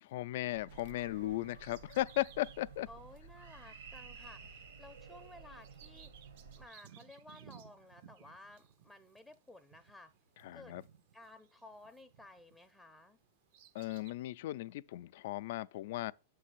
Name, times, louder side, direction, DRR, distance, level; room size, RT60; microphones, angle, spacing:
voice 1, 0.0-2.9 10.4-10.8 13.7-16.1, left 16 dB, 65° left, 0.3 m, -37 dB
sound 1, 0.5-6.7, right 5 dB, 75° right, 1.2 m, -53 dB
Bird vocalization bird call bird song, 0.7-12.8 13.2-14.1, right 9 dB, 60° right, 0.6 m, -61 dB
voice 2, 2.9-6.1 6.6-10.1 10.5-10.7 11.1-13.2, left 2 dB, 5° left, 0.5 m, -55 dB
7.7 x 3.3 x 6.0 m
hypercardioid pair, 110°, 0 cm